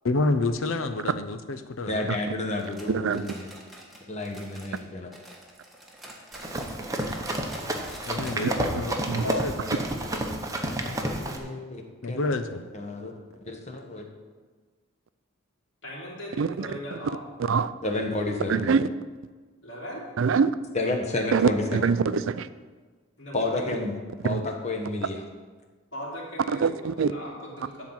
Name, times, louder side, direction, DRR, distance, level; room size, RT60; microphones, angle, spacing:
voice 1, 0.0-2.1 8.1-9.5 12.0-12.6, left 2 dB, 80° left, 9 dB, 0.7 m, -28 dB
voice 2, 1.9-3.5 4.1-5.1 10.8-11.8 12.1-12.3 12.7-13.1 13.4-14.0 17.8-18.7 20.7-21.9 23.3-24.0 24.2-25.2, left 2 dB, 35° left, 2 dB, 1.2 m, -30 dB
sound 1, 2.6-4.9 5.1-8.4 8.7-8.8 9.2-9.3 9.9-10.0, right 1 dB, ahead, 1.3 m, -46 dB
voice 3, 2.9-3.2 8.4-8.5 9.1-9.2 16.4-16.7 17.4-17.7 18.5-18.9 20.2-20.5 21.3-22.5 24.2-24.4 26.5-27.1, right 5 dB, 70° right, 14 dB, 0.4 m, -24 dB
Run, 6.3-11.4, right 1 dB, 15° right, 0.8 m, -30 dB
voice 4, 9.1-10.7 15.8-17.2 19.6-20.0 23.2-23.7 25.9-27.8, left 1 dB, 65° left, -5 dB, 2.8 m, -38 dB
12.0 x 4.0 x 7.3 m, 1.4 s
head